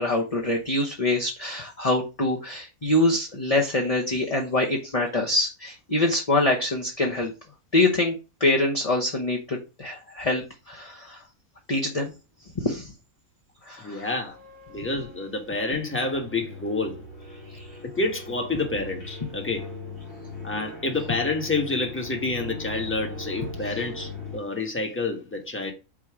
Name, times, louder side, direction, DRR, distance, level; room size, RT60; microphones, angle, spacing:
voice 1, 0.0-7.3 7.7-8.1 8.4-11.2 11.7-12.1 12.6-12.9 13.7-14.1 17.6-17.7, left 2 dB, 30° left, 1.0 m, -25 dB
voice 2, 13.8-14.4 14.7-17.0 17.8-19.7 20.4-25.7, left 3 dB, 10° left, 1.2 m, -28 dB
sound 1, 14.3-24.4, left 3 dB, 70° left, 3.7 m, -40 dB
8.6 x 2.9 x 4.8 m
omnidirectional pair, 1.5 m